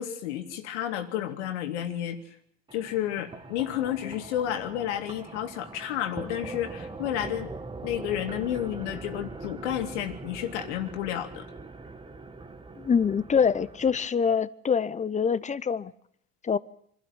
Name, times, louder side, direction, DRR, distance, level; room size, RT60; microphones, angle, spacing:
voice 1, 0.0-2.2 2.7-7.5 7.8-11.5, left 11 dB, 90° left, 6 dB, 2.6 m, -31 dB
sound 1, 2.7-14.1, right 3 dB, 15° right, 1.5 m, -42 dB
voice 2, 12.8-15.9 16.4-16.6, left 6 dB, 20° left, 17 dB, 0.9 m, -25 dB
25.5 x 12.5 x 9.0 m, 0.69 s
supercardioid pair, 105°, 34 cm